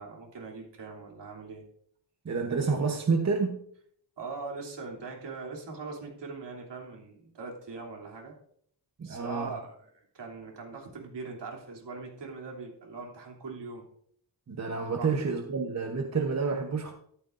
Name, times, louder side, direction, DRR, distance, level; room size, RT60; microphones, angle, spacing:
voice 1, 0.0-1.6 4.2-8.3 9.0-13.8 15.0-15.1, right 4 dB, 65° right, -1 dB, 3.1 m, -41 dB
voice 2, 2.2-3.6 9.0-9.5 14.5-16.9, right 4 dB, 35° right, 2 dB, 1.0 m, -29 dB
13.5 x 12.5 x 2.6 m, 0.65 s
wide cardioid pair, 165°, 46 cm